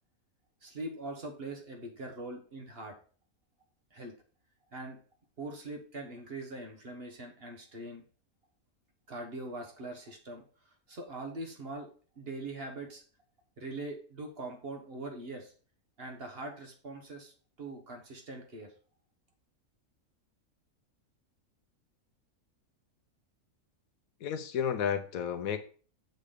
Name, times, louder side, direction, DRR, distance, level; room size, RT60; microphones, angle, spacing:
voice 1, 0.6-3.0 3.9-4.1 4.7-5.0 5.4-8.0 9.1-11.9 12.1-13.0 13.6-15.5 16.0-18.7, right 2 dB, 45° right, 1.3 m, -42 dB
voice 2, 24.2-25.6, left 8 dB, 70° left, 1.0 m, -32 dB
6.6 x 3.8 x 5.0 m
omnidirectional pair, 1.6 m